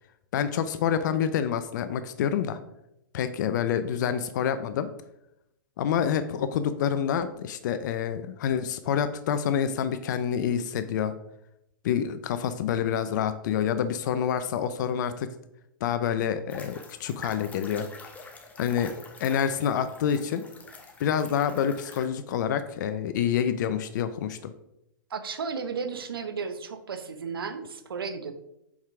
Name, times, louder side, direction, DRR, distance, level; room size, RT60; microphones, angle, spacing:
voice 1, 0.3-2.6 3.1-4.9 5.8-11.1 11.8-15.3 15.8-17.9 18.6-18.9 19.2-20.4 21.0-24.5, left 8 dB, 55° left, 11 dB, 0.5 m, -27 dB
sound 1, 16.5-22.0, left 3 dB, 10° left, 0.9 m, -46 dB
voice 2, 25.1-28.3, right 5 dB, 85° right, 9 dB, 0.9 m, -34 dB
5.5 x 4.7 x 4.7 m, 0.84 s
hypercardioid pair, 130°, 12 cm